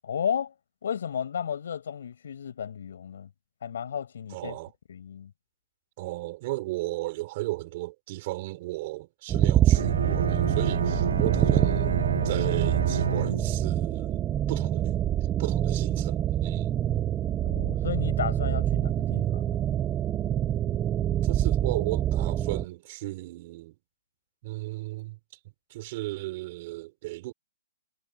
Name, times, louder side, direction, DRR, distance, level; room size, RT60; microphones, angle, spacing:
voice 1, 0.0-0.5 0.8-3.3 3.6-4.5 4.9-5.3 17.4-19.6, left 8 dB, 60° left, 7.9 m, -33 dB
voice 2, 4.3-4.7 6.0-11.9 12.2-15.0 15.4-16.8 21.2-23.8 24.4-25.2 25.7-27.3, right 19 dB, 30° right, 3.8 m, -35 dB
sound 1, 9.3-22.7, right 11 dB, 10° right, 1.0 m, -26 dB
Bowed string instrument, 9.7-13.8, right 6 dB, 90° right, 0.6 m, -28 dB
hypercardioid pair, 175°, 0 cm